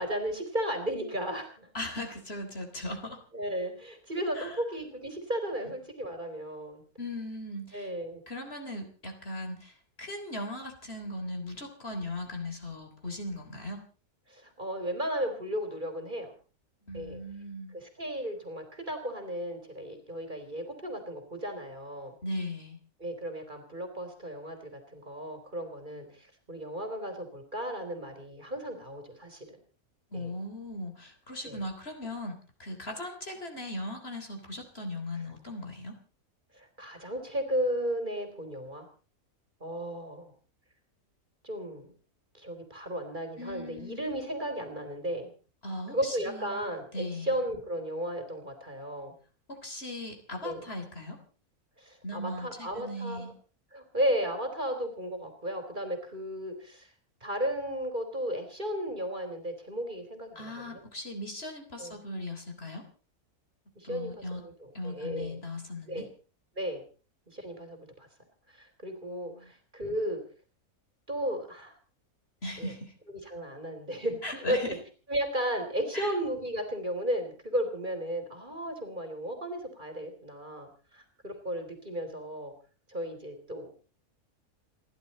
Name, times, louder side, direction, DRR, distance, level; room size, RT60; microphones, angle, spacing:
voice 1, 0.0-1.7 3.3-6.8 7.7-8.2 14.3-16.3 16.9-17.2 17.7-22.2 23.0-29.6 30.1-30.3 31.4-31.6 36.5-38.9 39.6-40.3 41.4-41.9 42.3-45.3 45.9-49.1 50.4-50.7 51.8-53.3 53.7-56.9 57.2-60.8 61.8-62.0 63.8-65.4 65.9-66.1 66.6-66.8 67.3-68.1 68.5-70.2 71.1-71.7 72.6-72.7 73.2-74.2 74.5-74.8 75.1-82.5 82.9-83.8, equal, 30° right, 6 dB, 3.5 m, -34 dB
voice 2, 1.7-3.2 4.3-4.6 7.0-7.9 8.3-13.8 16.8-17.8 22.2-22.8 30.1-32.3 32.6-36.0 43.4-44.0 45.6-47.3 49.5-51.2 52.0-53.3 60.4-62.8 63.8-64.4 64.7-66.1 69.3-69.5 72.4-72.9 74.2-74.8 75.9-76.1, left 1 dB, 40° left, 4 dB, 3.8 m, -38 dB
29.5 x 11.5 x 4.2 m, 0.38 s
omnidirectional pair, 1.5 m